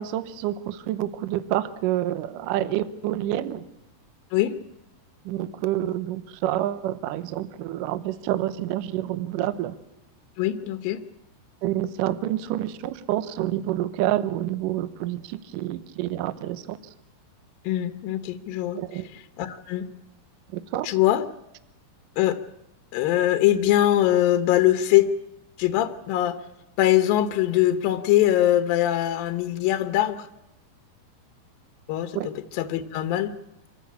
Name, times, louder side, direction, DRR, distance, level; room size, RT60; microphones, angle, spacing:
voice 1, 0.0-3.6 5.3-9.8 11.6-16.8 18.7-19.1 20.5-20.9 32.2-32.3, right 13 dB, 75° right, 12 dB, 2.1 m, -28 dB
voice 2, 10.4-11.0 17.6-19.9 20.8-21.2 22.2-22.4 22.9-25.1 25.6-26.4 26.8-30.3 31.9-33.3, left 13 dB, 70° left, 8 dB, 2.4 m, -22 dB
26.5 x 15.0 x 8.5 m, 0.88 s
omnidirectional pair, 4.8 m